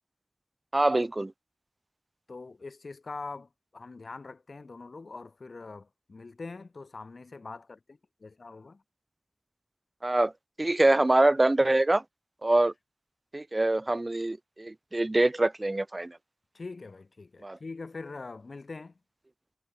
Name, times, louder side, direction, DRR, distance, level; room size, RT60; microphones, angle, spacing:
voice 1, 0.7-1.3 10.0-10.3 10.6-12.0 12.4-12.7 13.3-16.2 17.4-17.6, right 2 dB, 35° right, 0.3 m, -24 dB
voice 2, 2.3-8.8 16.5-19.0, left 3 dB, 80° left, 0.9 m, -43 dB
wide cardioid pair, 75°, 0 cm